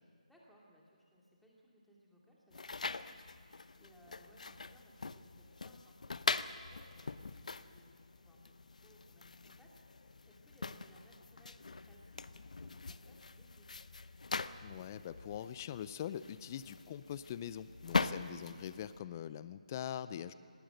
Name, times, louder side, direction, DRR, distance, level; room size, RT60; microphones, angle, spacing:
voice 1, 0.2-8.5 8.8-14.0, equal, ahead, -4 dB, 2.5 m, -65 dB
sound 1, 2.5-19.0, left 4 dB, 65° left, 0.7 m, -42 dB
voice 2, 14.6-20.3, left 10 dB, 25° left, 15 dB, 0.4 m, -43 dB
19.0 x 18.0 x 7.8 m, 2.2 s
figure-of-eight pair, 155°, 4 cm